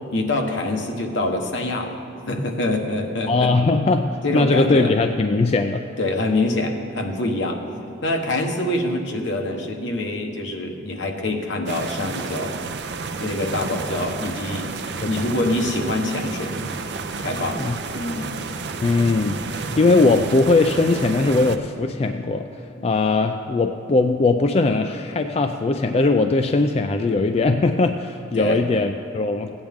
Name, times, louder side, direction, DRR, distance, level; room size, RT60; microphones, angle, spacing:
voice 1, 0.1-2.0 2.3-3.5 3.9-4.9 6.0-7.6 8.0-12.5 13.2-14.7 15.0-16.5 17.2-18.3 28.3-28.6, left 2 dB, 75° left, 3 dB, 1.1 m, -25 dB
voice 2, 3.3-5.8 15.0-15.1 17.6-17.7 18.8-22.4 22.8-29.5, left 3 dB, 30° left, 6 dB, 0.3 m, -20 dB
sound 1, 11.7-21.6, right 4 dB, 60° right, 0.5 m, -31 dB
15.5 x 8.9 x 3.6 m, 2.6 s
head